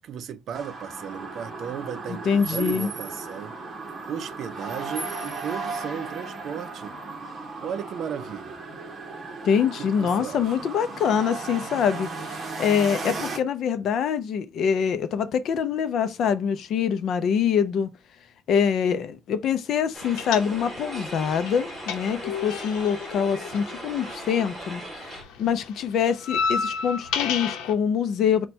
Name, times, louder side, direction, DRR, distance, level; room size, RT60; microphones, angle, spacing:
voice 1, 0.0-3.6 4.1-7.0 7.6-8.6 9.8-10.5, right 8 dB, 45° right, 0.4 m, -35 dB
sound 1, 0.5-13.4, right 3 dB, 25° right, 0.8 m, -36 dB
voice 2, 2.3-2.9 9.4-17.9 18.5-28.5, left 7 dB, 45° left, 0.4 m, -25 dB
sound 2, 19.9-25.2, right 1 dB, 5° right, 1.4 m, -38 dB
sound 3, 20.2-20.9 21.2-24.6 24.8-27.7, left 6 dB, 80° left, 0.7 m, -30 dB
4.2 x 2.2 x 4.2 m
cardioid pair, 165°, 0 cm